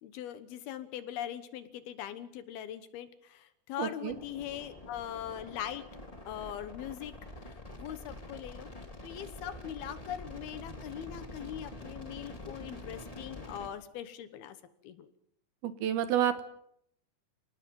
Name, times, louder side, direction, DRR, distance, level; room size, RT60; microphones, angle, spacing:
voice 1, 0.0-5.8 6.3-7.1 7.4-8.7 9.0-14.6 14.8-15.1, left 10 dB, 70° left, 12 dB, 2.9 m, -41 dB
voice 2, 3.8-4.2 15.6-16.4, right 10 dB, 70° right, 11 dB, 2.9 m, -29 dB
sound 1, 4.1-13.7, left 1 dB, 20° left, 0.9 m, -46 dB
29.5 x 18.5 x 5.4 m, 0.72 s
omnidirectional pair, 4.8 m